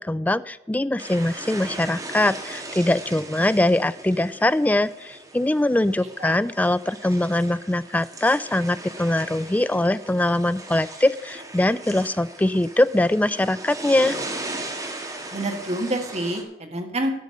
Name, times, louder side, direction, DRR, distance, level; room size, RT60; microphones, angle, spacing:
voice 1, 0.0-14.2, left 1 dB, 10° left, 15 dB, 0.3 m, -22 dB
sound 1, 1.0-16.4, right 2 dB, 20° right, 1.6 m, -38 dB
voice 2, 6.0-6.4 15.3-17.1, right 1 dB, 40° right, 4 dB, 1.5 m, -28 dB
12.5 x 5.2 x 8.4 m, 0.87 s
head